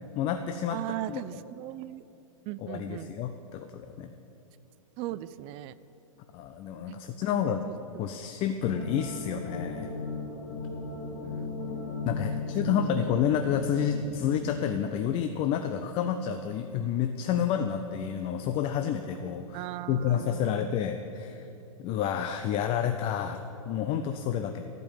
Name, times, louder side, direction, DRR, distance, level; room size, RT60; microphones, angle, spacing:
voice 1, 0.2-0.8 1.1-1.4 2.6-4.1 6.3-7.7 8.0-9.9 12.0-19.6 19.9-21.5 21.8-23.4 23.7-24.7, left 8 dB, 35° left, 7 dB, 0.6 m, -29 dB
voice 2, 0.7-2.0 2.5-3.1 5.0-5.7 6.9-7.0 7.3-8.0 11.1-11.6 12.3-13.1 19.5-20.7, right 14 dB, 35° right, 15 dB, 0.4 m, -39 dB
sound 1, 8.6-14.4, left 3 dB, 50° left, 2.7 m, -36 dB
14.0 x 5.3 x 9.2 m, 2.8 s
hypercardioid pair, 125°, 18 cm